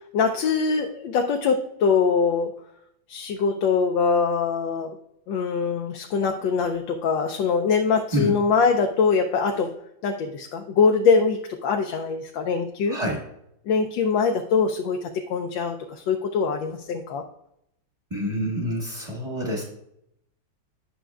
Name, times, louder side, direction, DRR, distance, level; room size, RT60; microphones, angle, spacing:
voice 1, 0.1-2.5 3.1-5.0 5.3-9.7 10.0-13.0 13.7-17.2, left 5 dB, 80° left, 4 dB, 1.3 m, -23 dB
voice 2, 12.9-13.2 18.1-19.6, equal, 20° right, -2 dB, 0.8 m, -27 dB
10.0 x 6.1 x 2.3 m, 0.78 s
omnidirectional pair, 2.0 m